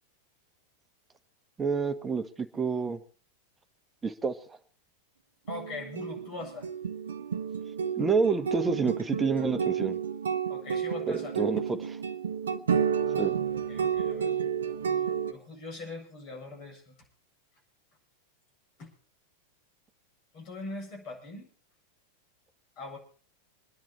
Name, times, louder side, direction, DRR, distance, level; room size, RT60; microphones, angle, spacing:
voice 1, 1.6-3.0 4.0-4.3 7.9-10.0 11.1-12.0 13.2-13.3, right 5 dB, 15° right, 8 dB, 1.5 m, -28 dB
voice 2, 5.5-6.7 10.5-11.6 13.7-14.3 15.3-17.0 18.8-18.9 20.3-21.5 22.8-23.0, left 3 dB, 40° left, 1 dB, 7.6 m, -41 dB
sound 1, 5.5-15.3, right 7 dB, 65° right, 1.0 m, -31 dB
26.5 x 10.5 x 4.2 m, 0.41 s
figure-of-eight pair, 90°, 0 cm